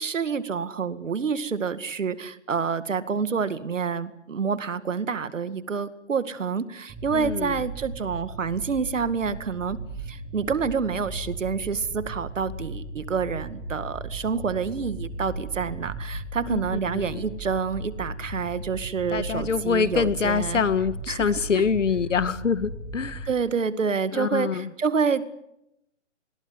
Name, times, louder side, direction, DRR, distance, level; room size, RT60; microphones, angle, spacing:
voice 1, 0.0-9.8 10.1-20.6 21.1-21.6 23.3-25.3, right 5 dB, 85° right, 13 dB, 2.2 m, -28 dB
sound 1, 6.9-23.3, right 2 dB, 5° right, 1.3 m, -37 dB
voice 2, 7.1-7.6 16.4-17.2 19.1-23.3 24.1-24.7, left 6 dB, 80° left, 14 dB, 1.9 m, -25 dB
27.5 x 21.0 x 9.7 m, 0.87 s
hypercardioid pair, 175°, 37 cm